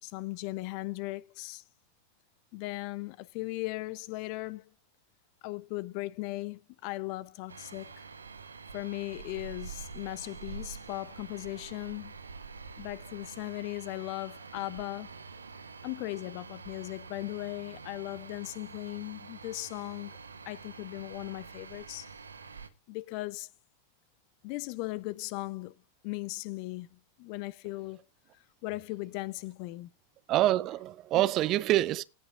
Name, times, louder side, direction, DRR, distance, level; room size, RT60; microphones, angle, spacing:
voice 1, 0.0-1.6 2.5-4.6 5.4-7.9 8.7-12.1 12.8-15.1 15.8-20.2 20.5-22.1 22.9-23.5 24.4-25.7 26.0-28.0 28.6-29.9 31.1-31.3, left 20 dB, 45° left, 0.6 m, -38 dB
sound 1, 7.5-22.7, right 5 dB, 75° right, 1.0 m, -46 dB
voice 2, 30.3-32.0, right 15 dB, 35° right, 0.6 m, -26 dB
18.0 x 8.8 x 2.5 m
figure-of-eight pair, 90°, 0 cm